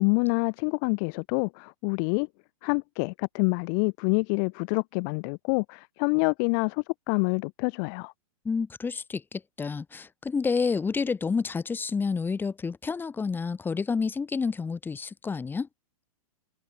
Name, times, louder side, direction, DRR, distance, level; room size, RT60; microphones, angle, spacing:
voice 1, 0.0-2.3 2.6-8.1, left 40 dB or more, 35° left, 0.4 m, -27 dB
voice 2, 8.4-15.7, left 5 dB, 10° left, 2.1 m, -29 dB
hypercardioid pair, 130°, 18 cm